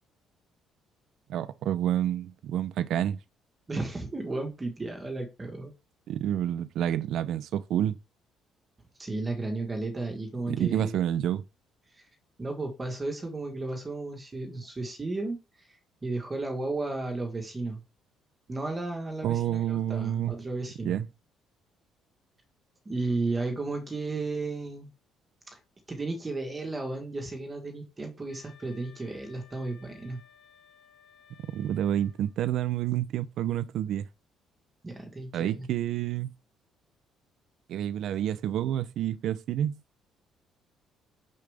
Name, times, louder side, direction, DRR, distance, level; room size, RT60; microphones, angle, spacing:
voice 1, 1.3-3.2 6.1-8.0 10.5-11.4 19.2-20.4 20.8-21.1 31.5-34.1 35.3-36.3 37.7-39.7, right 11 dB, 60° right, 0.6 m, -29 dB
voice 2, 3.7-5.7 9.0-10.9 12.4-15.4 16.0-17.8 18.5-21.0 22.8-24.9 25.5-25.6 25.9-30.2 34.8-35.7, right 3 dB, 15° right, 1.4 m, -33 dB
Wind instrument woodwind instrument, 28.3-32.5, left 7 dB, 55° left, 2.8 m, -58 dB
6.7 x 6.5 x 3.5 m
cardioid pair, 175°, 0 cm